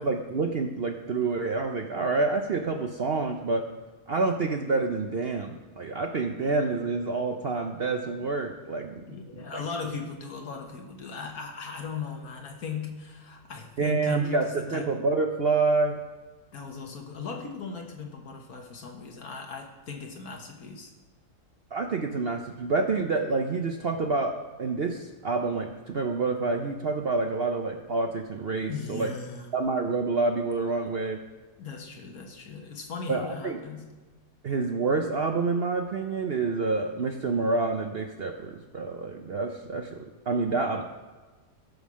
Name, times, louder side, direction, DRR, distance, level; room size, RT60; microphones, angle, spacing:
voice 1, 0.0-3.7 4.1-9.0 13.8-16.0 21.7-29.1 29.5-31.2 33.1-33.6 34.4-40.8, right 3 dB, 50° right, 4 dB, 0.7 m, -28 dB
voice 2, 9.1-15.0 16.5-20.9 28.7-29.5 31.6-33.9, left 5 dB, 65° left, 2 dB, 1.8 m, -38 dB
14.0 x 5.5 x 6.3 m, 1.3 s
omnidirectional pair, 1.7 m